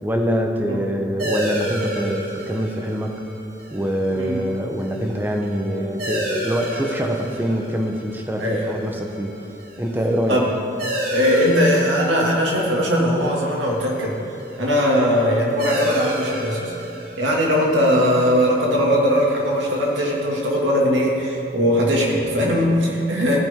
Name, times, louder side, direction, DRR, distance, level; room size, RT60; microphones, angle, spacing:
voice 1, 0.0-3.2 3.7-9.3 9.8-10.4, equal, 10° right, 2 dB, 0.9 m, -24 dB
sound 1, 1.2-20.3, equal, 50° right, 2.5 m, -32 dB
voice 2, 4.1-4.6 8.4-8.8 10.3-10.5 11.1-14.2 14.6-16.7 17.2-23.4, equal, 85° right, -2 dB, 2.3 m, -20 dB
16.0 x 9.9 x 3.7 m, 2.6 s
head